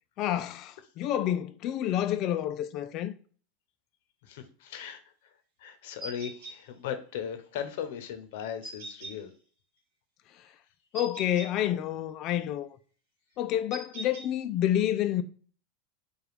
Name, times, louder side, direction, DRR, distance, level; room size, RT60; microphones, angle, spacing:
voice 1, 0.2-3.1 10.9-12.8 13.4-15.2, left 11 dB, 40° left, 0.3 m, -29 dB
voice 2, 4.2-5.3 5.6-9.3, left 8 dB, 70° left, 0.7 m, -38 dB
sound 1, 6.0-6.5 8.6-9.1 10.9-11.5 13.7-14.3, right 2 dB, 65° right, 1.7 m, -40 dB
4.9 x 2.3 x 3.2 m
supercardioid pair, 160°, 0 cm